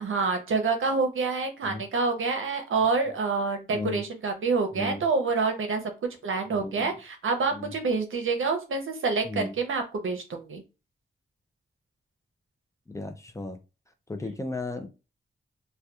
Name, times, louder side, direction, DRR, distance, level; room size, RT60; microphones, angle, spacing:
voice 1, 0.0-5.8 6.2-10.6, right 4 dB, 80° right, 0.6 m, -27 dB
voice 2, 3.7-4.0 4.7-5.0 6.5-7.0 7.5-7.7 9.2-9.5 12.9-13.6 14.1-14.9, left 2 dB, 15° left, 0.3 m, -35 dB
2.7 x 2.2 x 2.2 m
wide cardioid pair, 155°, 20 cm